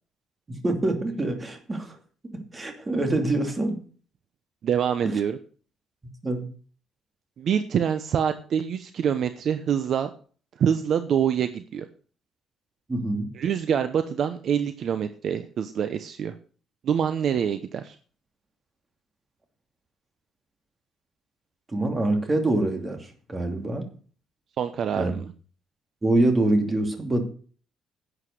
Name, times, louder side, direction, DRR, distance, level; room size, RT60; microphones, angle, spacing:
voice 1, 0.5-1.9 2.3-3.8 5.0-5.1 6.2-6.5 12.9-13.3 21.7-23.9 25.0-25.1 26.0-27.3, right 2 dB, 20° right, 4 dB, 2.7 m, -25 dB
voice 2, 4.6-5.4 7.4-10.1 10.6-11.9 13.3-16.3 16.8-18.0 24.6-25.3, right 8 dB, 50° right, 9 dB, 0.9 m, -25 dB
11.0 x 8.2 x 6.7 m, 0.41 s
cardioid pair, 155°, 0 cm